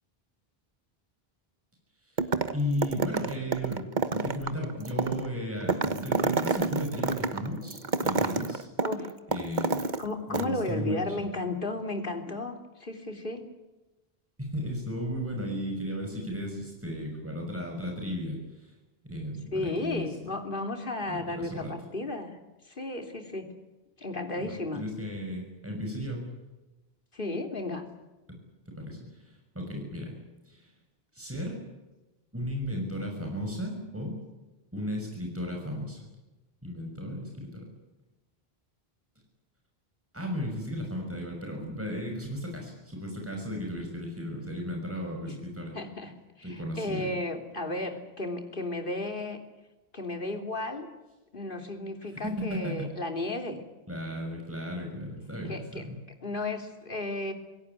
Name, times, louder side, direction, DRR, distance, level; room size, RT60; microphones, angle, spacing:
voice 1, 2.0-3.8 4.1-8.7 9.3-9.8 10.3-11.3 14.4-18.7 19.0-20.2 21.1-21.7 24.4-26.3 28.3-28.4 28.7-30.1 30.4-30.7 31.1-31.6 32.3-34.2 34.7-36.0 36.6-37.7 40.1-45.7 46.4-47.1 52.1-52.9 53.9-56.0, equal, 10° right, 1 dB, 6.2 m, -35 dB
sound 1, 2.2-2.6 2.8-10.1 10.3-10.4, right 4 dB, 50° right, 1.4 m, -29 dB
voice 2, 10.0-13.4 19.5-22.4 22.7-23.5 24.0-24.8 27.1-27.9 45.2-45.4 45.7-46.1 46.4-49.4 49.9-50.9 51.3-53.6 55.5-55.8 56.2-57.3, left 2 dB, 55° left, 5 dB, 3.4 m, -34 dB
27.0 x 17.5 x 9.9 m, 1.1 s
omnidirectional pair, 1.1 m